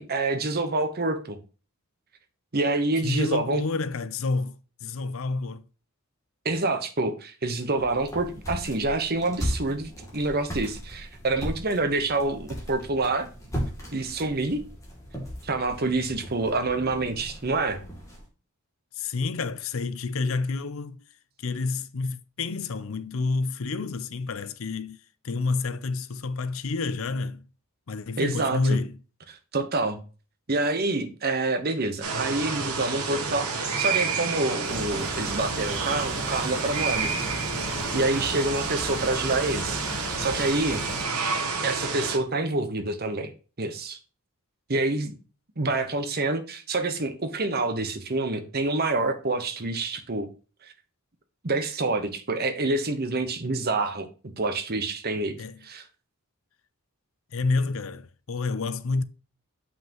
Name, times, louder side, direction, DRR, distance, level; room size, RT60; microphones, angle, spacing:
voice 1, 0.0-1.4 2.5-3.6 6.4-13.3 13.9-14.6 15.4-17.8 28.2-28.8 29.5-30.0 30.5-37.1 37.9-39.8 40.2-40.8 41.6-43.3 43.6-44.0 44.7-45.1 45.6-50.3 51.4-54.1 54.4-55.4 55.6-55.9, right 2 dB, 45° right, 1.0 m, -27 dB
voice 2, 3.0-5.7 18.9-21.0 21.4-25.0 25.2-27.5 27.9-29.0 55.4-55.6 57.3-59.0, left 3 dB, 65° left, 0.6 m, -29 dB
sound 1, 7.7-18.3, equal, 15° left, 2.6 m, -37 dB
sound 2, 32.0-42.2, right 4 dB, 90° right, 1.4 m, -29 dB
sound 3, 34.6-41.0, left 1 dB, ahead, 1.1 m, -38 dB
7.4 x 5.7 x 3.0 m
head